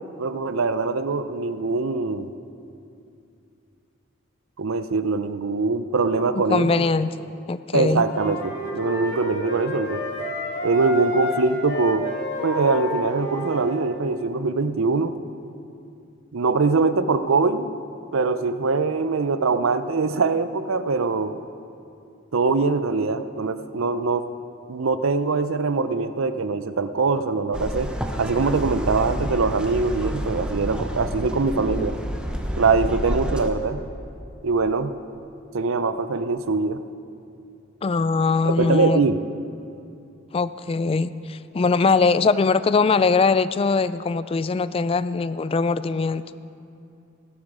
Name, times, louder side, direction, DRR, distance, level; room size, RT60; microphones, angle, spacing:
voice 1, 0.2-2.3 4.6-6.8 7.7-10.0 10.6-12.1 12.4-15.2 16.3-17.7 18.1-21.4 22.3-24.2 24.7-27.9 28.2-32.0 32.6-33.8 34.4-34.9 35.5-36.8 38.4-39.2, right 4 dB, 80° right, 12 dB, 0.6 m, -23 dB
voice 2, 6.4-7.1 7.5-8.0 37.8-39.0 40.3-46.2, left 4 dB, 25° left, 15 dB, 0.3 m, -21 dB
sound 1, 8.0-13.8, equal, 55° left, 2.4 m, -30 dB
sound 2, 27.5-33.5, equal, 5° right, 0.9 m, -29 dB
16.0 x 13.0 x 4.9 m, 2.6 s
head